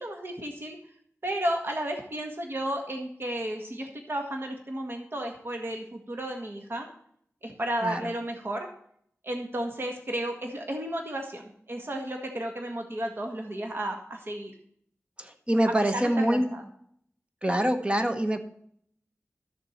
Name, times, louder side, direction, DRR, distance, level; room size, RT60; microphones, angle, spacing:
voice 1, 0.0-0.8 1.2-6.9 7.4-8.7 9.2-14.5 15.9-16.6, right 1 dB, 50° right, 3 dB, 1.6 m, -33 dB
voice 2, 7.8-8.1 15.2-16.5 17.4-18.4, right 1 dB, 20° right, 7 dB, 1.2 m, -25 dB
13.0 x 6.9 x 4.4 m, 0.65 s
wide cardioid pair, 90°, 5 cm